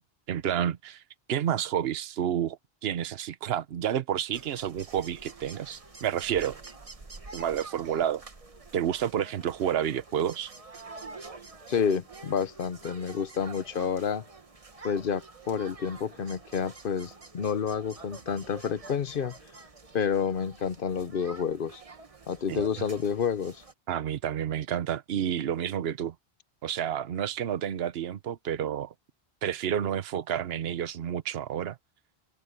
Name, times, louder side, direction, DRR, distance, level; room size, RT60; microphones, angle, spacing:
voice 1, 0.3-1.0 1.3-6.6 7.3-8.2 8.7-10.5 22.5-22.6 23.9-26.1 26.6-28.9 29.4-31.8, right 9 dB, 65° right, 1.0 m, -30 dB
sound 1, 4.3-23.7, right 3 dB, 35° right, 1.3 m, -48 dB
voice 2, 11.7-14.2 14.8-19.3 19.9-21.8 22.3-23.6, left 7 dB, 55° left, 0.9 m, -29 dB
open air
omnidirectional pair, 1.1 m